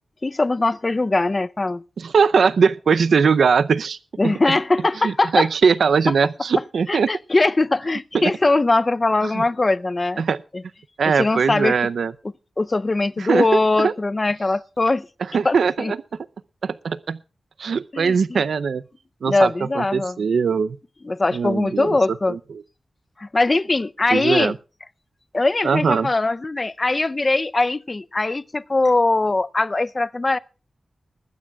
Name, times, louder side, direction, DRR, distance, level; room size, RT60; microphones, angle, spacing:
voice 1, 0.2-1.8 4.2-5.5 6.9-10.2 10.5-10.6 11.0-11.7 12.6-15.1 15.4-15.9 17.9-18.4 19.2-20.2 21.0-22.4 23.2-24.5 25.3-30.4, left 2 dB, 25° left, 0.6 m, -21 dB
voice 2, 2.0-4.0 4.2-4.3 5.0-7.1 8.1-8.2 9.2-9.4 10.2-10.4 11.0-12.1 13.2-13.9 15.3-16.0 16.6-17.2 17.6-18.8 19.2-20.8 21.3-22.0 22.3-22.4 24.1-24.5 25.6-26.1, right 5 dB, 80° right, 0.6 m, -20 dB
20.5 x 15.0 x 2.3 m
wide cardioid pair, 150°, 0 cm